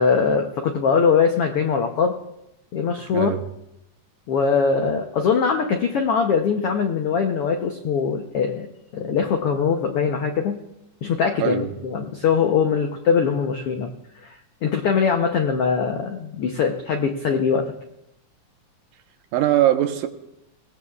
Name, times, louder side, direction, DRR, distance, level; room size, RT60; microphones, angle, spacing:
voice 1, 0.0-2.1 2.7-3.3 4.3-8.7 8.9-10.6 11.0-13.9 14.2-17.7, left 6 dB, 80° left, 4 dB, 1.3 m, -22 dB
voice 2, 3.0-3.4 11.4-11.7 19.3-20.1, right 13 dB, 85° right, 6 dB, 2.5 m, -21 dB
24.5 x 17.5 x 2.4 m, 0.87 s
omnidirectional pair, 3.7 m